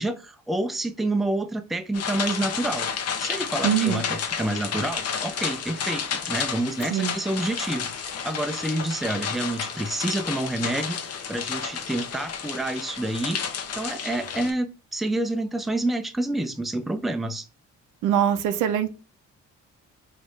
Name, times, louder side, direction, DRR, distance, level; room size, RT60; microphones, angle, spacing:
voice 1, 0.0-2.9 3.2-13.4 13.7-17.5, right 1 dB, ahead, 0.4 m, -28 dB
sound 1, 1.9-14.5, left 7 dB, 55° left, 0.7 m, -31 dB
voice 2, 3.6-4.0 6.9-7.1 18.0-18.9, right 9 dB, 90° right, 0.6 m, -23 dB
4.5 x 2.5 x 3.1 m
cardioid pair, 90°, 30 cm